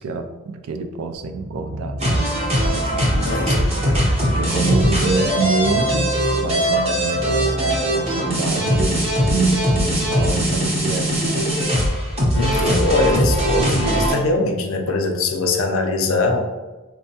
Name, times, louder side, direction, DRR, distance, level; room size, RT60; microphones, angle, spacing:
voice 1, 0.0-2.3 2.6-3.9 4.3-6.1 6.4-11.5, right 4 dB, 80° right, 8 dB, 0.4 m, -26 dB
sound 1, 1.1-8.4, left 1 dB, 5° left, 0.7 m, -30 dB
sound 2, 2.0-14.1, equal, 30° right, 0.7 m, -20 dB
voice 2, 3.3-3.6 12.3-16.4, left 2 dB, 70° left, 3 dB, 0.5 m, -21 dB
4.4 x 2.2 x 2.7 m, 1.2 s
head